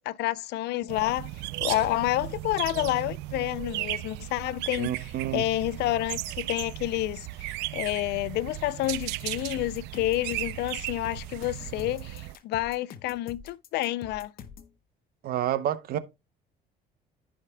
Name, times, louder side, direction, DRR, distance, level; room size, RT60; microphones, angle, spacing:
voice 1, 0.1-1.3 1.6-4.9 5.3-14.3, left 16 dB, 75° left, 0.5 m, -29 dB
sound 1, 0.9-12.4, right 17 dB, 90° right, 0.4 m, -36 dB
voice 2, 4.8-5.4 15.2-16.0, right 11 dB, 65° right, 0.8 m, -29 dB
sound 2, 8.8-14.7, left 7 dB, 60° left, 0.9 m, -46 dB
14.5 x 5.0 x 2.2 m
cardioid pair, 110°, 17 cm